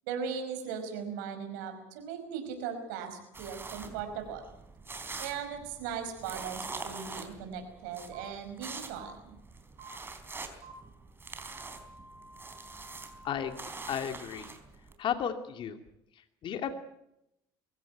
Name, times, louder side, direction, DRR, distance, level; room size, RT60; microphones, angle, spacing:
voice 1, 0.1-4.4 5.2-9.3, right 7 dB, 90° right, 6 dB, 5.3 m, -38 dB
sound 1, 3.3-14.9, right 3 dB, 20° right, 4.1 m, -44 dB
sound 2, 8.1-8.2 8.9-9.0 9.8-9.9 10.6-10.7 11.4-13.5, right 2 dB, 60° right, 5.4 m, -52 dB
voice 2, 13.2-13.6 13.9-14.6 15.0-15.8 16.1-16.7, left 8 dB, 55° left, 6 dB, 2.5 m, -34 dB
23.5 x 16.0 x 9.3 m, 0.83 s
supercardioid pair, 90°, 10 cm